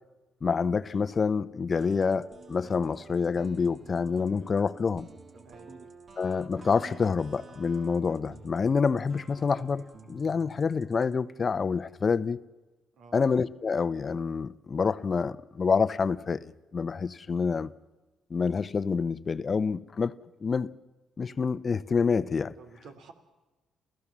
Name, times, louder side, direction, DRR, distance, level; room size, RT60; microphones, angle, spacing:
voice 1, 0.4-5.1 6.2-12.4 13.1-17.7 18.3-20.1 20.4-20.7 21.2-22.5, left 5 dB, 40° left, 0.8 m, -27 dB
sound 1, 1.7-11.1, right 4 dB, 45° right, 2.3 m, -50 dB
voice 2, 5.4-5.7 12.9-13.2 22.6-23.1, right 4 dB, 75° right, 3.1 m, -50 dB
27.5 x 15.5 x 7.4 m
cardioid pair, 90°, 0 cm